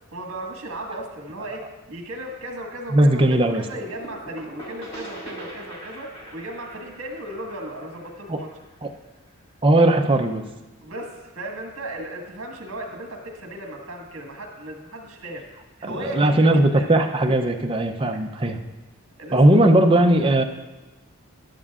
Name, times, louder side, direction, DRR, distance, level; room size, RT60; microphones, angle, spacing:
voice 1, 0.1-1.6 1.9-8.5 10.8-15.4 15.8-17.0 18.1-18.2 19.2-19.7, right 1 dB, 60° right, 2 dB, 1.6 m, -36 dB
voice 2, 2.9-3.7 8.3-8.4 8.8-8.9 9.6-10.5 15.8-18.6 19.3-20.4, right 1 dB, 25° right, 4 dB, 0.5 m, -18 dB
sound 1, 3.7-9.3, right 1 dB, 25° left, 1.9 m, -41 dB
12.5 x 11.0 x 2.4 m, 1.1 s
head